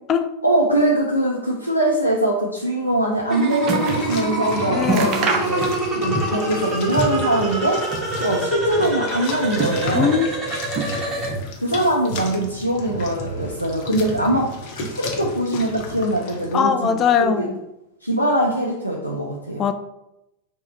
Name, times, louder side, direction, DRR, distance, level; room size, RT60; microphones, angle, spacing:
voice 1, 0.4-7.8 8.2-10.1 11.6-14.5 14.8-17.5 18.0-19.7, right 1 dB, 90° left, -3 dB, 0.4 m, -22 dB
sound 1, 2.9-4.1 4.4-4.5 4.8-6.1 6.4-7.3 7.7-8.6 9.2-10.2 10.7-11.4 11.7-12.5 13.1-13.2, right 3 dB, 35° right, 0.5 m, -28 dB
sound 2, 3.3-11.3, right 2 dB, 20° right, 1.0 m, -26 dB
sound 3, 3.6-16.6, left 1 dB, 45° left, 0.7 m, -33 dB
voice 2, 4.7-5.2 9.9-10.3 16.5-17.5 19.6-19.7, left 7 dB, 30° left, 8 dB, 0.3 m, -20 dB
3.5 x 2.0 x 4.0 m, 0.89 s
figure-of-eight pair, 90°, 0 cm